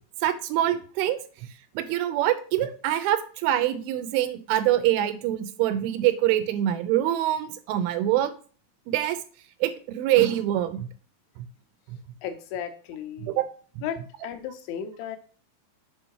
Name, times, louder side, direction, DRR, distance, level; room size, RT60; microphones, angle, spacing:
voice 1, 0.2-1.2 1.8-8.3 8.9-9.2 9.6-10.9 11.9-12.0 13.2-13.4, right 12 dB, 90° right, 10 dB, 3.3 m, -24 dB
voice 2, 12.2-13.4 13.8-15.2, left 9 dB, 80° left, 7 dB, 3.1 m, -35 dB
7.4 x 5.5 x 4.6 m, 0.41 s
omnidirectional pair, 5.4 m